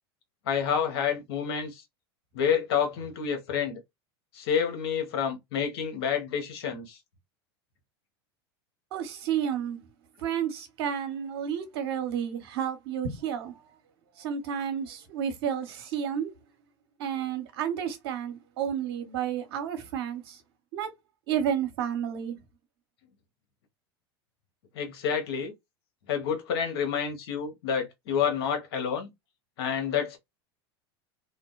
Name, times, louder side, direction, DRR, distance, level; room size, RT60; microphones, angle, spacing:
voice 1, 0.4-1.8 2.3-3.8 4.3-7.0 24.7-25.5 26.1-29.1 29.6-30.2, left 7 dB, 70° left, 1.0 m, -29 dB
voice 2, 8.9-9.8 10.2-13.7 14.2-16.3 17.0-20.4 20.7-20.9 21.3-22.4, right 8 dB, 70° right, 0.9 m, -31 dB
2.6 x 2.1 x 2.2 m
hypercardioid pair, 90°, 13 cm